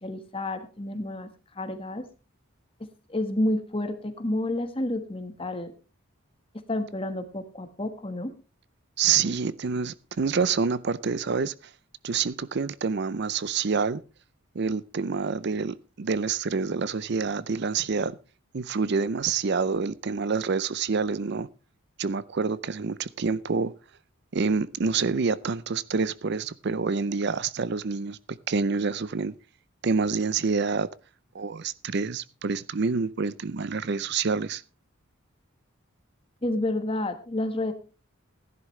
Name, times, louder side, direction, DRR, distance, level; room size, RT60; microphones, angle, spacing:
voice 1, 0.0-1.3 1.5-2.1 3.1-5.7 6.7-8.3 36.4-37.7, left 1 dB, 25° left, 1.3 m, -30 dB
voice 2, 9.0-11.5 12.0-14.0 14.5-18.2 18.5-21.5 22.0-23.7 24.3-29.3 29.8-30.9 31.3-34.6, right 5 dB, 55° right, 0.5 m, -27 dB
16.0 x 11.0 x 3.2 m
head